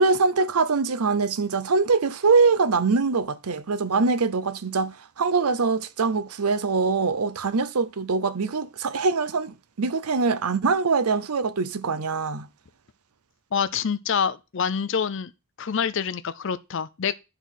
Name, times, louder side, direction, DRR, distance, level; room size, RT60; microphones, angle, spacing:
voice 1, 0.0-12.5, right 4 dB, 85° right, 0.7 m, -23 dB
voice 2, 13.5-15.3 15.6-17.1, left 6 dB, 55° left, 0.5 m, -26 dB
10.0 x 4.0 x 6.3 m
head